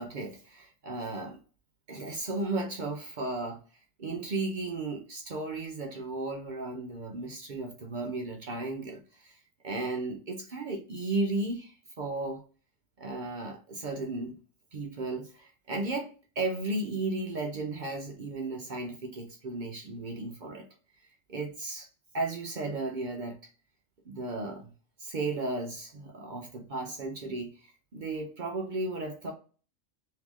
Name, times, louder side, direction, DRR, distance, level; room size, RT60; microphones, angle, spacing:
voice 1, 0.0-1.4 1.9-3.6 4.0-9.4 9.6-12.4 13.0-14.4 14.7-16.1 16.4-20.7 21.3-21.9 22.1-23.4 24.1-24.7 25.0-29.3, right 2 dB, 55° right, 2 dB, 0.5 m, -34 dB
3.2 x 2.8 x 3.5 m, 0.39 s
omnidirectional pair, 1.4 m